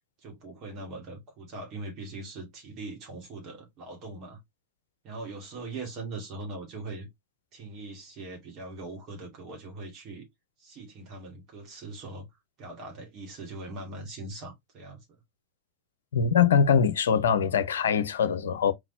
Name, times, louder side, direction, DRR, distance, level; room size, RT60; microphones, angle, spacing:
voice 1, 0.2-4.4 5.0-7.1 7.5-10.3 10.6-12.3 12.6-15.0, right 2 dB, 35° right, 2.5 m, -41 dB
voice 2, 16.1-18.7, left 7 dB, 65° left, 0.6 m, -23 dB
4.5 x 3.9 x 2.8 m
figure-of-eight pair, 90°, 0 cm